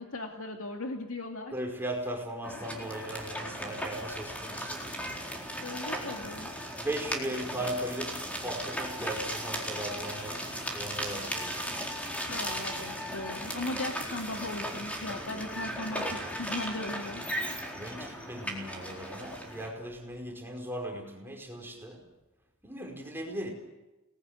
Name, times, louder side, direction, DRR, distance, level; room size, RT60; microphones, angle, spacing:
voice 1, 0.0-1.5 5.6-6.5 12.3-17.2, left 2 dB, 75° left, 3 dB, 2.4 m, -38 dB
voice 2, 1.5-4.8 5.9-6.0 6.8-8.1 8.4-10.4 10.7-11.6 17.7-22.0 22.6-23.5, right 1 dB, 10° right, 1 dB, 5.0 m, -37 dB
sound 1, 2.4-19.7, equal, 5° left, 4.2 m, -37 dB
29.5 x 20.0 x 9.7 m, 1.0 s
head